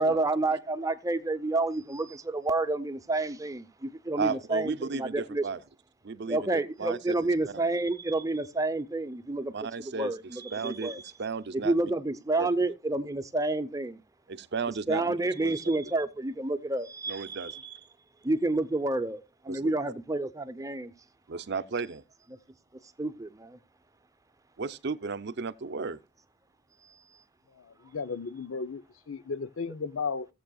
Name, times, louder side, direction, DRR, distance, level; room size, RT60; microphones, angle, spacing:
voice 1, 0.0-5.4 6.3-9.5 9.8-11.0 11.6-14.0 14.9-17.5 18.2-20.9 23.0-23.6, right 2 dB, 15° right, 0.7 m, -29 dB
voice 2, 4.2-5.6 6.0-7.1 9.5-10.1 10.5-10.9 11.2-11.9 12.4-12.5 14.3-15.1 15.4-15.5 17.1-17.9 19.5-19.7 21.3-22.0 24.6-26.0, right 5 dB, 55° right, 0.6 m, -34 dB
voice 3, 27.9-28.8 29.1-30.3, left 5 dB, 85° left, 0.6 m, -34 dB
16.5 x 7.7 x 2.3 m
head